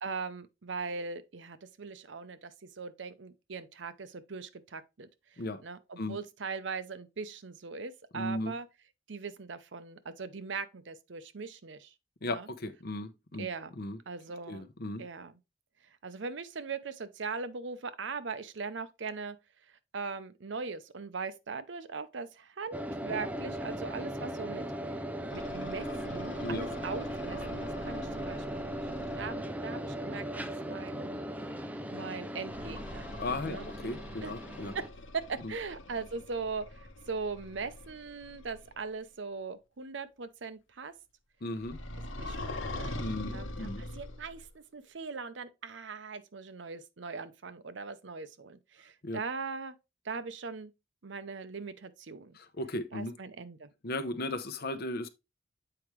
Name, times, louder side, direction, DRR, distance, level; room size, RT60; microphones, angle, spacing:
voice 1, 0.0-8.7 9.1-11.9 12.2-12.5 13.4-13.7 14.1-14.7 15.0-15.4 16.0-19.4 19.9-25.0 25.3-28.8 29.2-31.2 31.5-31.6 31.9-33.1 33.4-33.7 34.2-34.3 34.7-34.9 35.1-40.9 42.2-43.0 43.3-49.7 50.0-50.7 51.0-52.4 52.9-53.7, right 4 dB, 65° right, 0.7 m, -40 dB
voice 2, 8.1-8.5 12.2-13.5 13.8-14.0 14.5-15.0 26.4-26.8 33.2-34.7 35.4-35.5 41.4-41.8 43.0-43.8 49.0-49.2 52.3-53.1 53.8-55.1, left 2 dB, 55° left, 0.8 m, -36 dB
sound 1, 22.7-34.9, right 1 dB, 10° right, 0.5 m, -38 dB
sound 2, 25.3-29.4 32.5-38.8 41.6-44.5, left 1 dB, 85° left, 1.1 m, -43 dB
7.8 x 4.8 x 3.1 m
head